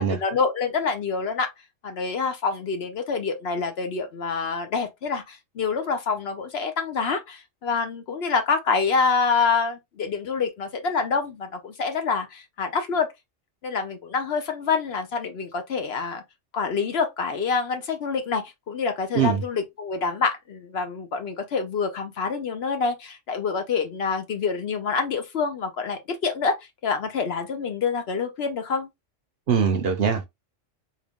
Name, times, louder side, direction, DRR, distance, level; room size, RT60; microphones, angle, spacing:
voice 1, 0.0-1.5 1.8-13.1 13.6-16.2 16.5-26.6 26.8-28.9, left 5 dB, 60° left, 0.9 m, -26 dB
voice 2, 29.5-30.3, right 7 dB, 55° right, 0.8 m, -22 dB
3.7 x 2.3 x 3.5 m
omnidirectional pair, 1.3 m